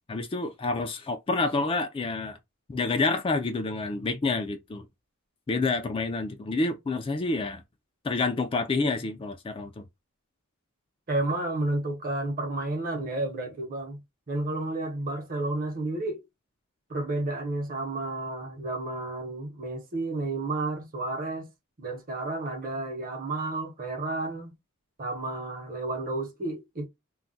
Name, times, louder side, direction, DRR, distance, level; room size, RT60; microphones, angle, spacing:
voice 1, 0.1-2.4 2.7-4.9 5.5-7.6 8.0-9.8, left 3 dB, 25° left, 0.3 m, -28 dB
voice 2, 11.1-14.0 14.3-16.2 16.9-21.5 21.8-24.5 25.0-26.9, right 2 dB, 40° right, 0.9 m, -31 dB
2.3 x 2.1 x 3.8 m
head